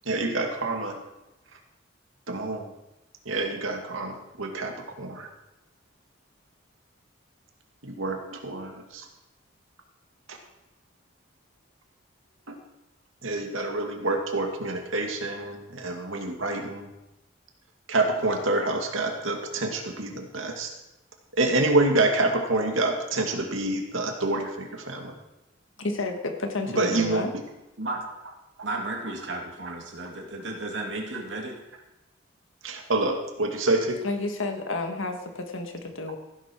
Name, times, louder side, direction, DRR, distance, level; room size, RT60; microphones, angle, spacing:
voice 1, 0.1-0.9 2.3-2.7 3.3-5.3 7.8-9.1 10.3-10.4 12.5-12.6 13.2-16.9 17.9-20.7 21.4-25.1 26.8-27.3 28.6-28.7 32.6-34.0, right 2 dB, 85° right, 2 dB, 2.2 m, -27 dB
voice 2, 25.8-27.3 34.0-36.2, left 2 dB, 85° left, 5 dB, 1.8 m, -31 dB
voice 3, 28.6-31.6, right 2 dB, 65° right, 0 dB, 2.7 m, -33 dB
15.5 x 11.0 x 4.6 m, 0.94 s
head